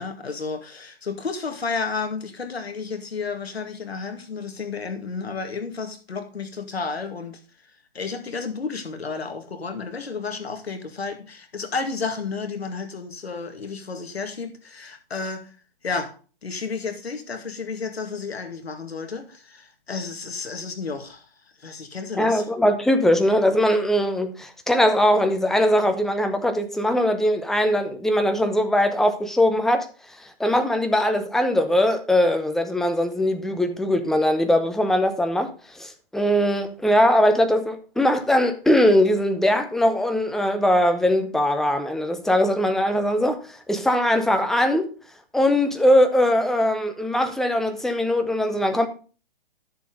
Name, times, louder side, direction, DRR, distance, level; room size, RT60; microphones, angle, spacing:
voice 1, 0.0-7.4 7.9-15.6 15.8-16.1 16.4-21.3 21.6-22.5, left 4 dB, 90° left, 2.1 m, -32 dB
voice 2, 22.2-29.9 30.2-44.9 45.3-48.9, left 1 dB, ahead, 0.7 m, -21 dB
11.5 x 6.9 x 3.8 m
hypercardioid pair, 135°, 30 cm